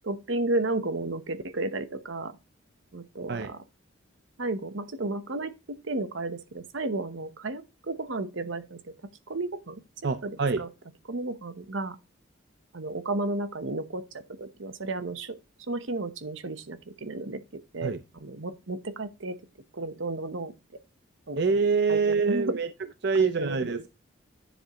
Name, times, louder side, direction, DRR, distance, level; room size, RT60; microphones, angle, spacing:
voice 1, 0.0-2.4 2.9-3.6 4.4-8.8 9.3-9.8 10.2-10.7 11.1-12.0 12.7-14.0 14.4-15.4 15.7-17.9 18.2-19.4 19.7-20.5 21.3-21.4 21.9-22.6 23.2-23.8, right 2 dB, 70° right, 0.9 m, -33 dB
voice 2, 10.0-10.6 17.8-18.0 21.4-22.7 23.0-23.9, right 4 dB, 55° right, 0.5 m, -25 dB
10.0 x 7.1 x 3.0 m
head